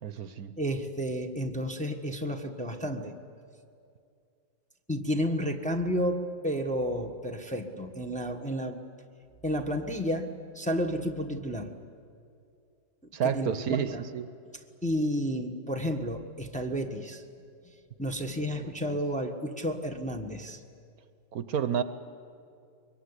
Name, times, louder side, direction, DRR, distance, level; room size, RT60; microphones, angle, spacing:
voice 1, 0.0-0.6 13.1-14.3 18.6-19.0 21.3-21.8, right 8 dB, 65° right, 12 dB, 1.3 m, -30 dB
voice 2, 0.6-3.1 4.9-8.8 9.4-11.7 13.2-14.0 14.8-17.2 18.0-20.6, equal, 5° left, 2 dB, 1.2 m, -31 dB
24.0 x 22.0 x 9.8 m, 2.4 s
omnidirectional pair, 1.7 m